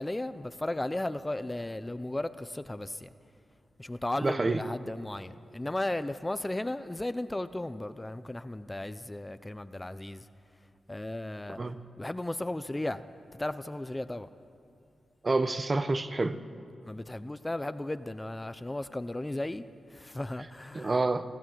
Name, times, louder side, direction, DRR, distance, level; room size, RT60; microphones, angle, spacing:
voice 1, 0.0-3.1 3.8-10.3 10.9-11.6 12.0-13.0 13.3-14.3 16.8-21.0, left 1 dB, 20° left, 13 dB, 0.8 m, -35 dB
voice 2, 4.2-4.6 11.6-11.7 15.2-16.4 20.7-21.2, right 3 dB, 40° right, 10 dB, 1.2 m, -28 dB
29.5 x 12.5 x 7.9 m, 2.6 s
cardioid pair, 45°, 0 cm